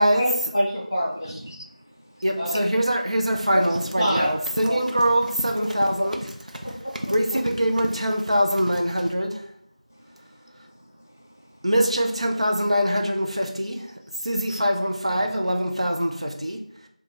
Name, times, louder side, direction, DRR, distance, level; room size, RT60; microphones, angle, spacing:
voice 1, 0.1-1.4 2.4-2.6 3.5-3.6 4.0-4.3 4.6-4.8 5.5-5.7 6.0-6.1 6.6-7.4, equal, 5° right, -9 dB, 1.5 m, -26 dB
voice 2, 1.4-2.2 9.9-11.7 14.5-14.6 15.2-15.3, equal, 25° left, 2 dB, 0.3 m, -47 dB
voice 3, 2.2-6.2 7.1-9.4 11.6-13.9 14.2-16.6, equal, 50° right, 3 dB, 0.5 m, -23 dB
Run, 3.3-9.1, right 1 dB, 85° right, 0.7 m, -36 dB
3.7 x 2.4 x 4.6 m, 0.70 s
figure-of-eight pair, 180°, 4 cm